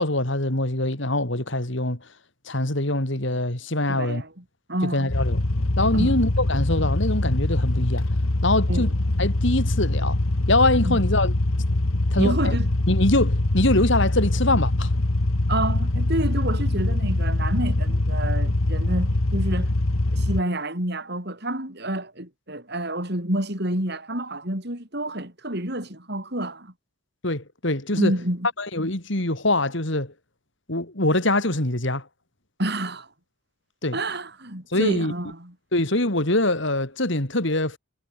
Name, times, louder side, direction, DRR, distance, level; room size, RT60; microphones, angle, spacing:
voice 1, 0.0-2.1 2.4-4.2 4.9-5.4 5.8-8.1 8.4-8.9 9.2-10.2 10.5-11.3 12.1-12.5 12.9-14.9 27.2-28.1 28.6-30.1 30.7-32.1 33.8-34.0 34.7-35.1 35.7-37.8, left 2 dB, 60° left, 3.4 m, -23 dB
voice 2, 3.9-4.3 4.7-5.1 5.9-6.2 8.7-8.9 10.8-11.0 12.2-12.7 15.5-19.7 20.1-26.7 27.9-28.5 32.6-33.1 33.9-35.5, right 1 dB, 50° right, 6.0 m, -28 dB
sound 1, 5.1-20.4, left 1 dB, 80° left, 1.6 m, -23 dB
head